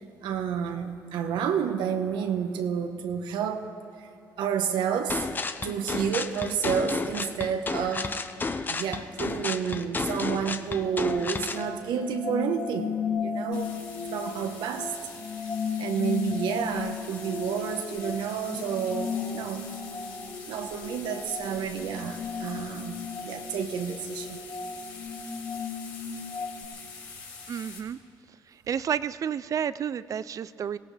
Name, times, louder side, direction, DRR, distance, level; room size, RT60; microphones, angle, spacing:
voice 1, 0.2-3.7 4.0-4.1 4.4-5.3 5.6-8.1 8.7-13.7 14.1-14.9 15.8-19.7 20.5-23.0 23.2-24.4, right 7 dB, 90° right, 6 dB, 1.2 m, -30 dB
sound 1, 5.1-11.6, left 4 dB, 25° left, 0.7 m, -32 dB
sound 2, 10.8-26.6, left 6 dB, 55° left, 3.8 m, -35 dB
sound 3, 13.5-27.8, left 5 dB, 90° left, 4.6 m, -45 dB
voice 2, 27.5-28.0 28.7-30.8, right 8 dB, 45° right, 16 dB, 0.4 m, -30 dB
23.5 x 17.5 x 3.4 m, 2.9 s
cardioid pair, 110°, 8 cm